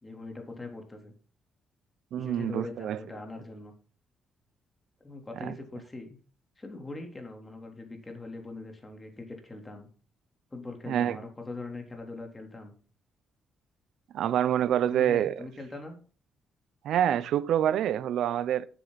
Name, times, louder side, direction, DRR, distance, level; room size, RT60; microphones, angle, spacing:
voice 1, 0.0-1.1 2.2-3.7 5.0-6.2 6.6-9.9 10.5-12.7 14.9-16.0, left 2 dB, 20° left, 3.6 m, -41 dB
voice 2, 2.1-3.0 5.4-5.5 10.9-11.2 14.1-15.3 16.8-18.7, right 10 dB, 75° right, 0.7 m, -26 dB
12.5 x 10.0 x 4.2 m
cardioid pair, 90°, 0 cm